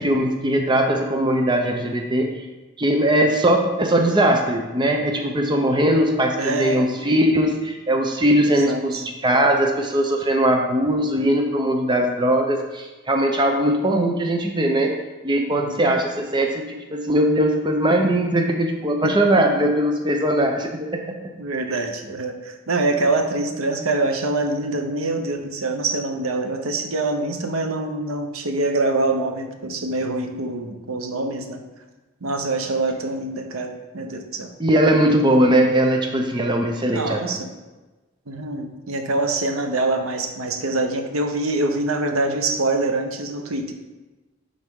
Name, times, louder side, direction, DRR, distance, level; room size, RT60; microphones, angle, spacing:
voice 1, 0.0-2.5 2.8-14.9 15.2-21.3 21.7-21.8 34.6-37.2, right 1 dB, 20° right, 3 dB, 0.6 m, -20 dB
voice 2, 6.4-6.9 8.4-9.0 15.5-15.9 19.0-19.2 21.4-31.6 32.2-34.5 36.9-37.5 38.3-43.7, right 2 dB, 90° right, 5 dB, 0.8 m, -25 dB
11.0 x 4.0 x 3.6 m, 1.2 s
head